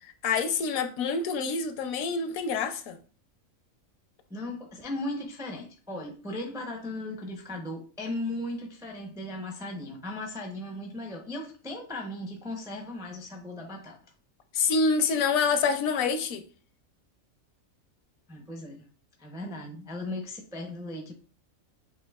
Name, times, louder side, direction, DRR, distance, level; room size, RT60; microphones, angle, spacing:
voice 1, 0.2-3.0 14.5-16.4, left 5 dB, 75° left, 1.0 m, -26 dB
voice 2, 4.3-14.0 18.3-18.8 19.2-21.1, left 1 dB, 5° right, 0.3 m, -37 dB
6.7 x 2.5 x 2.3 m
omnidirectional pair, 1.5 m